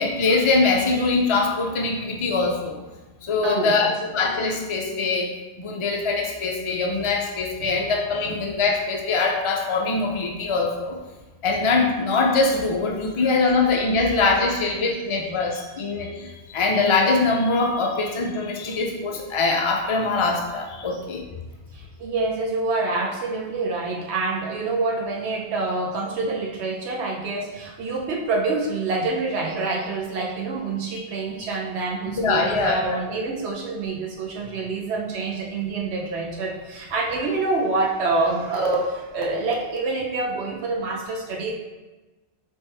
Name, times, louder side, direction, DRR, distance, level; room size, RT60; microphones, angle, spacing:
voice 1, 0.0-2.8 3.2-5.3 5.6-11.0 11.4-21.3 30.9-31.0 32.2-33.0, left 3 dB, 55° left, 0 dB, 0.3 m, -23 dB
voice 2, 3.4-3.9 7.6-7.7 15.5-15.6 21.7-41.5, right 3 dB, 75° right, -1 dB, 1.0 m, -26 dB
4.4 x 3.4 x 3.2 m, 1.2 s
omnidirectional pair, 1.1 m